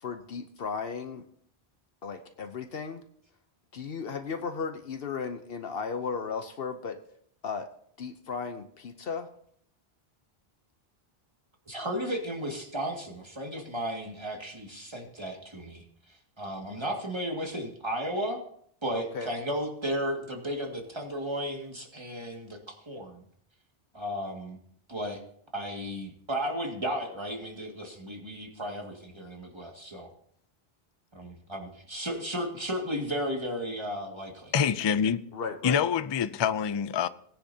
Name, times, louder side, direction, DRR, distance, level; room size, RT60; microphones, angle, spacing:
voice 1, 0.0-1.2 2.0-3.0 3.7-7.0 7.4-7.7 8.0-9.3 18.9-19.3 35.3-35.8, left 5 dB, 70° left, 1.0 m, -35 dB
voice 2, 11.7-15.8 16.4-18.4 18.8-23.2 23.9-24.6 24.9-25.2 25.5-30.1 31.1-34.5, equal, 25° right, 2.1 m, -34 dB
voice 3, 34.5-35.2 35.6-37.1, left 7 dB, 45° left, 0.3 m, -26 dB
19.0 x 10.0 x 2.8 m
omnidirectional pair, 1.0 m